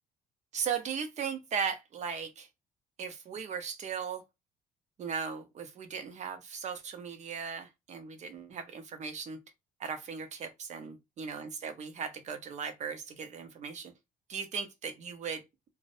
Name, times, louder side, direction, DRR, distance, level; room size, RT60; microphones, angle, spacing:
voice 1, 0.5-2.5 3.0-4.2 5.0-9.4 9.8-13.9 14.3-15.4, right 6 dB, 45° right, 0.6 m, -37 dB
2.5 x 2.0 x 2.4 m
cardioid pair, 110°, 17 cm